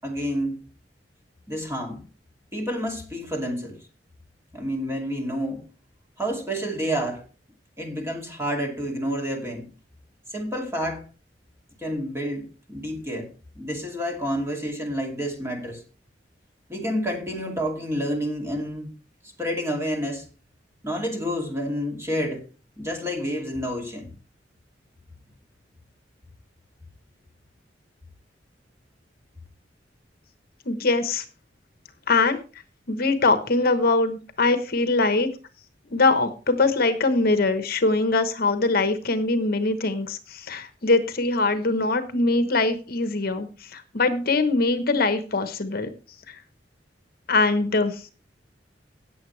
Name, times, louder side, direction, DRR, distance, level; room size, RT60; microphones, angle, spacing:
voice 1, 0.0-0.6 1.5-2.0 2.5-3.8 4.5-5.6 6.2-7.2 7.8-9.7 10.3-11.1 11.8-13.3 13.6-15.8 16.7-18.9 19.4-20.3 20.8-22.5 22.8-24.1, equal, 15° right, 2.5 m, -29 dB
voice 2, 30.7-31.2 32.1-32.4 32.9-35.3 35.9-45.9 46.3-46.4 47.3-48.0, left 3 dB, 55° left, 1.1 m, -22 dB
18.0 x 7.1 x 3.2 m
head